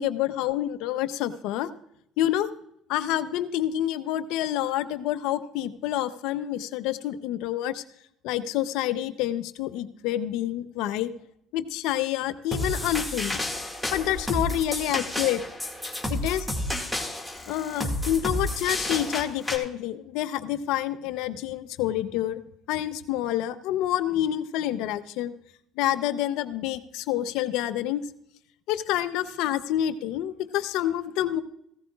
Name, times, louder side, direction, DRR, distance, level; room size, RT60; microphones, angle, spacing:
voice 1, 0.0-1.7 2.2-2.5 2.9-7.8 8.2-11.1 11.5-13.4 13.9-15.4 16.1-16.5 17.5-22.4 22.7-25.3 25.8-28.0 28.7-31.4, left 12 dB, 80° left, 12 dB, 0.7 m, -28 dB
sound 1, 12.5-19.6, left 1 dB, 5° left, 2.1 m, -31 dB
15.5 x 14.0 x 2.4 m, 0.75 s
supercardioid pair, 90°, 0 cm